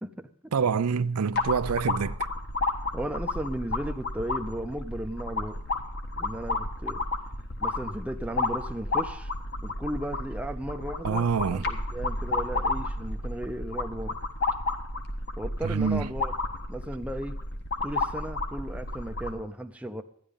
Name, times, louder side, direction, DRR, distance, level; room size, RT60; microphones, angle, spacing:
voice 1, 0.0-0.5 0.9-1.0 2.9-5.6 6.2-7.0 7.6-9.3 9.6-14.2 15.4-16.3 16.7-17.4 17.8-20.0, right 1 dB, 5° right, 0.6 m, -35 dB
voice 2, 0.5-2.2 11.0-11.6 15.6-16.1, right 6 dB, 80° right, 0.5 m, -26 dB
sound 1, 1.4-19.4, left 2 dB, 50° left, 1.4 m, -32 dB
13.0 x 10.0 x 5.3 m
head